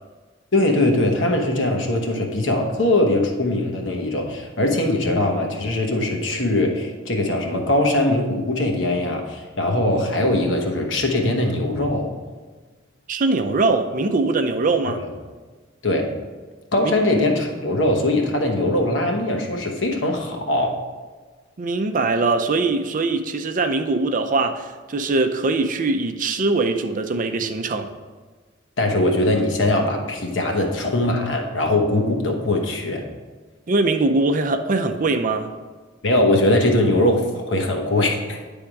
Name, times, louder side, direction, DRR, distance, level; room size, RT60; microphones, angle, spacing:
voice 1, 0.5-12.1 14.8-14.9 15.8-16.2 16.7-20.8 28.8-33.0 36.0-38.4, left 1 dB, 75° left, 2 dB, 1.1 m, -21 dB
voice 2, 13.1-15.0 16.8-16.9 21.6-27.9 33.7-35.5, right 3 dB, 45° right, 6 dB, 0.5 m, -22 dB
10.0 x 3.5 x 4.7 m, 1.4 s
head